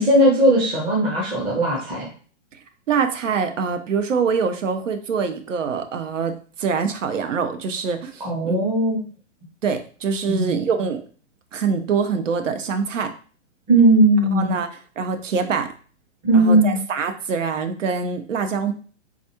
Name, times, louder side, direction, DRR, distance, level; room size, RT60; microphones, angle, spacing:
voice 1, 0.0-2.1 8.2-9.0 10.3-10.6 13.7-14.5 16.2-16.8, right 1 dB, 15° right, -3 dB, 0.6 m, -18 dB
voice 2, 2.9-8.6 9.6-11.0 11.5-13.1 14.3-14.7 15.0-15.7 16.3-18.7, right 5 dB, 80° right, 8 dB, 0.7 m, -24 dB
4.0 x 2.4 x 2.9 m, 0.41 s
hypercardioid pair, 130°, 37 cm